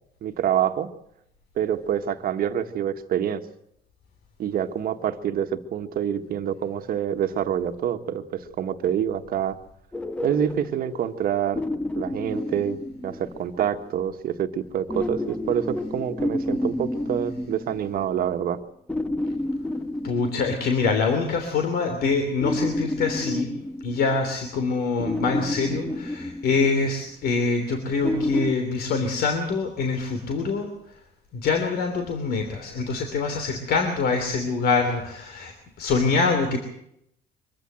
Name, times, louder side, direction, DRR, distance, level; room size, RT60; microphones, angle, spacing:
voice 1, 0.2-0.9 1.6-3.4 4.4-9.6 10.2-11.6 12.0-18.6, right 9 dB, 60° right, 8 dB, 1.7 m, -26 dB
sound 1, 9.9-13.6 14.9-18.2 18.9-21.0 22.4-24.5 25.0-27.0 28.0-28.5, left 1 dB, 5° left, 1.2 m, -30 dB
voice 2, 20.0-23.5 23.8-30.7 31.3-36.6, left 4 dB, 65° left, 5 dB, 3.1 m, -25 dB
23.5 x 14.5 x 7.8 m, 0.75 s
cardioid pair, 110°, 17 cm